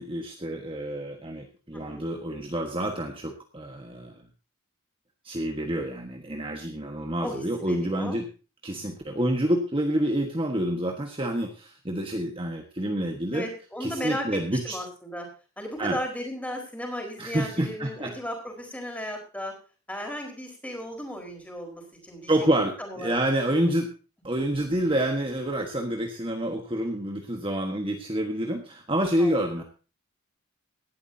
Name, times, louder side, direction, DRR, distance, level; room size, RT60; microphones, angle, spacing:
voice 1, 0.0-4.1 5.2-8.3 8.6-13.5 13.8-14.8 15.8-16.0 17.2-18.1 22.3-23.9 24.2-29.6, right 1 dB, 25° right, 3 dB, 1.4 m, -28 dB
voice 2, 1.7-2.1 7.2-8.2 13.3-15.3 15.6-19.5 19.9-22.3 22.8-23.7 29.2-29.4, equal, 5° left, 2 dB, 4.5 m, -35 dB
18.0 x 12.0 x 2.8 m, 0.34 s
head